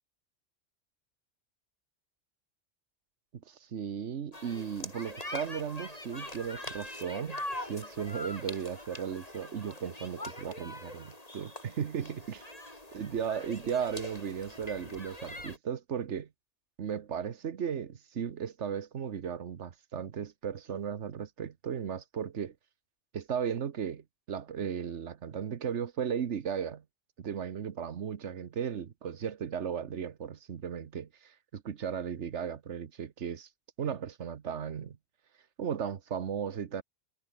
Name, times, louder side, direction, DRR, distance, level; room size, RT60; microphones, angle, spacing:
voice 1, 3.3-12.5 12.9-16.3 16.8-22.5 23.1-26.8 27.2-33.5 33.8-35.0 35.6-36.8, right 8 dB, 80° right, 1.4 m, -36 dB
sound 1, 4.3-15.6, left 1 dB, 35° left, 4.5 m, -43 dB
omnidirectional pair, 1.2 m